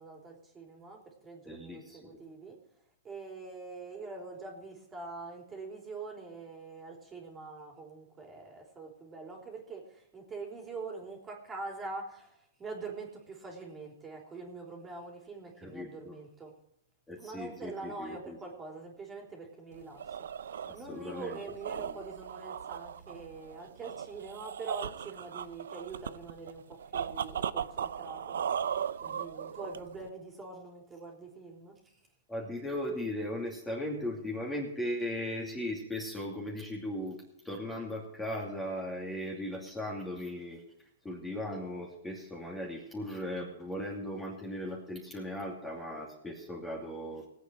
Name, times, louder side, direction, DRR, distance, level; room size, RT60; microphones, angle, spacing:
voice 1, 0.0-2.6 3.0-16.5 17.2-20.1 20.5-28.4 29.0-31.8, right 3 dB, 15° right, 0 dB, 3.4 m, -44 dB
voice 2, 1.4-2.2 15.6-16.2 17.1-18.4 20.7-21.4 21.8-22.0 32.3-40.6 41.0-47.3, left 1 dB, 10° left, -2 dB, 2.7 m, -38 dB
sound 1, 19.7-30.1, right 8 dB, 80° right, 0.6 m, -37 dB
19.5 x 8.3 x 4.6 m, 0.78 s
hypercardioid pair, 140°, 0 cm